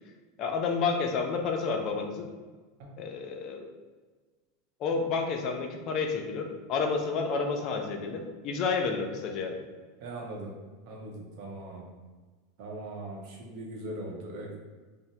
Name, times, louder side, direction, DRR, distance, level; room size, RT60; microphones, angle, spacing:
voice 1, 0.4-2.3 3.0-3.7 4.8-9.6, left 4 dB, 45° left, 3 dB, 0.4 m, -30 dB
voice 2, 10.0-10.6 10.9-11.9 12.6-14.6, right 1 dB, 60° right, -1 dB, 0.7 m, -40 dB
3.0 x 2.0 x 2.7 m, 1.4 s
supercardioid pair, 120°, 0 cm